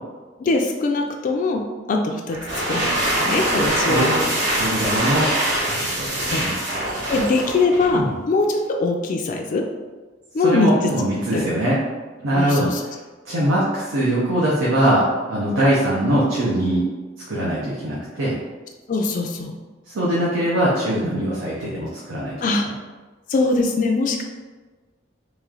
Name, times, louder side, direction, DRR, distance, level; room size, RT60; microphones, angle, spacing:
voice 1, 0.4-4.3 6.3-6.4 7.1-9.7 10.3-10.9 11.3-11.5 12.3-12.8 18.9-19.5 22.4-22.7 23.3-24.2, left 3 dB, 40° left, 2 dB, 0.3 m, -22 dB
sound 1, 2.3-8.0, right 1 dB, 65° right, 1.4 m, -23 dB
voice 2, 4.5-5.3 5.7-6.6 6.9-7.1 7.9-8.1 10.4-11.8 12.2-12.7 13.3-16.8 17.3-18.3 19.9-22.3, right 1 dB, 85° right, -6 dB, 0.8 m, -21 dB
3.1 x 3.1 x 3.7 m, 1.3 s
head